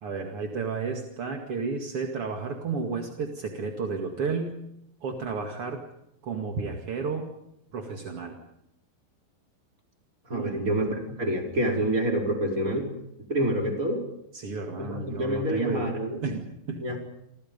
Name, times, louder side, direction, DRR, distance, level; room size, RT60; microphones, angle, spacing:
voice 1, 0.0-4.5 5.0-5.8 6.2-7.3 7.7-8.4 10.3-10.7 14.3-15.9 16.2-17.0, right 4 dB, 45° right, 3 dB, 2.2 m, -32 dB
voice 2, 10.3-12.9 13.3-14.0 14.8-16.2 16.8-17.0, right 1 dB, 20° right, 1 dB, 4.9 m, -27 dB
29.5 x 26.0 x 5.4 m, 0.80 s
omnidirectional pair, 5.2 m